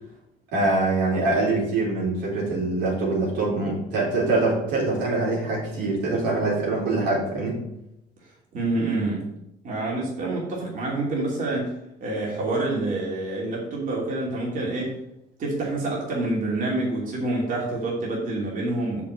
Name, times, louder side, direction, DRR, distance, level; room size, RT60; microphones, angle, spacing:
voice 1, 0.5-7.6, right 2 dB, 90° right, -4 dB, 3.9 m, -24 dB
voice 2, 8.5-9.2 9.6-11.7 12.0-15.0 15.4-19.0, right 2 dB, 50° right, -3 dB, 2.9 m, -27 dB
6.5 x 6.1 x 6.5 m, 0.86 s
cardioid pair, 110°, 17 cm